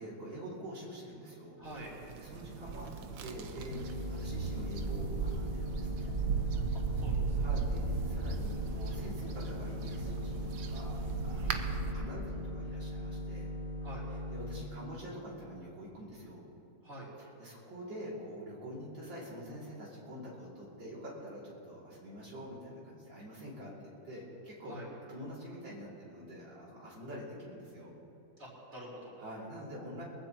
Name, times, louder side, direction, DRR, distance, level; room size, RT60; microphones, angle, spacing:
voice 1, 0.0-1.6 2.2-2.9 3.2-6.1 7.4-13.5 14.3-16.4 17.2-23.7 24.0-24.8 25.1-27.9 29.2-30.0, equal, 80° right, -6 dB, 3.5 m, -46 dB
voice 2, 1.6-1.9 7.0-7.4 11.3-11.7 13.8-14.0 16.8-17.1 24.7-24.9 28.4-29.2, right 1 dB, 35° right, -5 dB, 4.1 m, -47 dB
sound 1, 1.7-11.9, right 5 dB, 65° right, 1.4 m, -36 dB
sound 2, 3.7-14.6, left 1 dB, 70° left, 1.8 m, -40 dB
23.5 x 15.5 x 3.0 m, 2.9 s
omnidirectional pair, 2.0 m